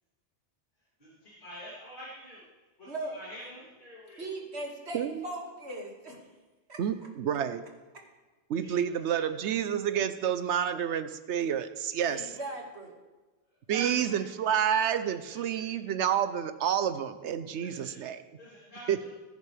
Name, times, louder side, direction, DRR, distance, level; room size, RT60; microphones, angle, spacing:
voice 1, 1.0-2.4 2.8-4.3 8.6-8.8 9.1-9.2 12.0-12.5 13.7-14.3 15.2-15.7 17.6-18.0 18.4-19.1, equal, 50° left, -9 dB, 3.2 m, -46 dB
voice 2, 2.8-3.2 4.2-6.2 6.7-6.8 7.9-8.0 12.0-13.0, right 1 dB, 70° right, 0 dB, 2.4 m, -39 dB
voice 3, 6.8-7.6 8.5-12.3 13.7-18.2 18.9-19.0, right 9 dB, 85° right, 11 dB, 1.0 m, -29 dB
19.5 x 11.0 x 3.4 m, 1.2 s
omnidirectional pair, 1.1 m